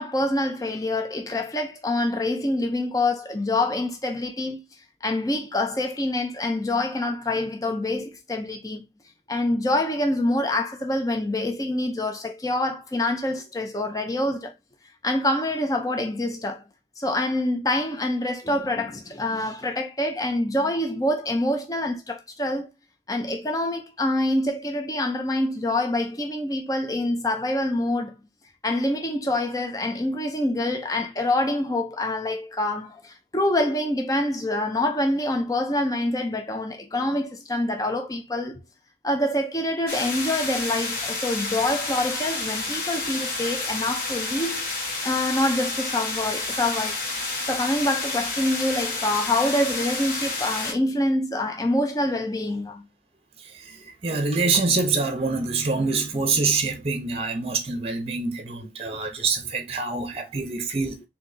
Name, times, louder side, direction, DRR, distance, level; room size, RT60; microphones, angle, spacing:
voice 1, 0.0-4.6 5.0-8.9 9.3-14.5 15.0-16.6 17.0-22.7 23.1-28.1 28.6-38.6 39.0-44.6 45.0-47.0 47.5-52.9, left 1 dB, 20° left, 0.7 m, -26 dB
sound 1, 39.9-50.7, left 3 dB, 50° left, 1.5 m, -30 dB
voice 2, 53.5-61.0, right 4 dB, 35° right, 0.8 m, -25 dB
4.0 x 2.8 x 4.0 m
head